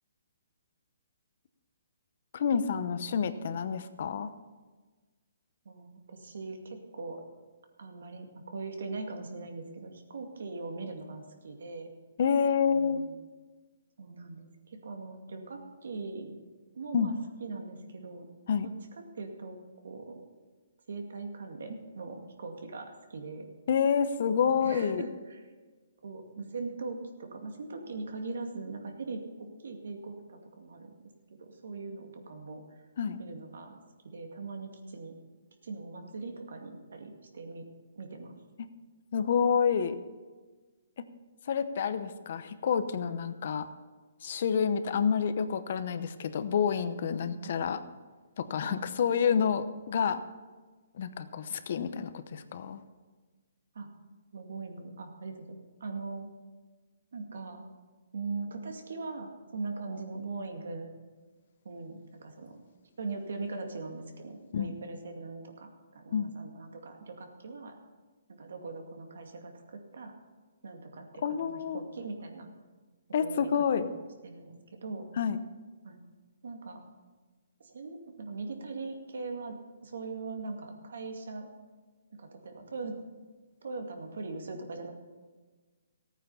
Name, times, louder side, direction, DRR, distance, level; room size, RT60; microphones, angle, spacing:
voice 1, 2.3-4.3 12.2-13.0 16.9-17.1 18.5-18.7 23.7-25.1 33.0-33.2 38.6-38.7 39.1-40.0 41.0-41.1 41.5-43.7 44.2-47.8 48.4-50.2 51.0-52.8 64.5-64.7 66.1-66.3 71.2-71.8 73.1-73.9 75.2-75.4, left 7 dB, 50° left, 11 dB, 0.8 m, -28 dB
voice 2, 5.7-7.2 7.8-11.9 12.7-13.1 14.0-16.4 16.7-18.3 18.6-19.6 19.8-20.2 20.9-23.5 24.3-25.4 26.0-30.9 31.4-32.8 33.2-35.1 35.6-37.7 38.0-38.3 47.3-47.5 48.7-48.8 53.7-53.9 54.3-55.4 55.8-56.3 57.1-57.6 58.1-60.9 61.6-62.6 63.0-67.8 68.3-70.1 70.6-72.5 73.2-73.9 74.2-75.1 75.8-76.0 76.4-76.8 77.6-81.5 82.1-83.0 83.6-84.9, right 3 dB, 75° right, 4 dB, 2.2 m, -41 dB
15.0 x 9.1 x 5.5 m, 1.3 s
hypercardioid pair, 165°, 0 cm